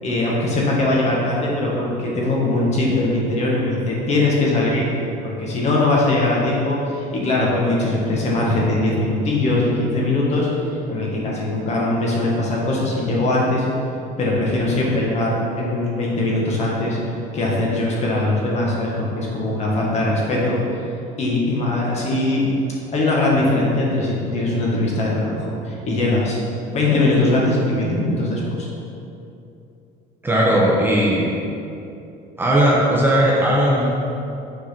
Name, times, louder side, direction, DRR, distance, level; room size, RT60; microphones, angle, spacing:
voice 1, 0.0-4.9 5.2-10.5 10.9-13.7 14.2-17.0 17.3-20.6 21.2-22.5 22.9-26.4 26.7-28.7, left 2 dB, 40° left, -4 dB, 1.8 m, -21 dB
voice 2, 30.2-31.3 32.4-33.8, right 1 dB, 10° right, -5 dB, 1.0 m, -17 dB
7.0 x 4.6 x 5.9 m, 2.7 s
cardioid pair, 145°, 18 cm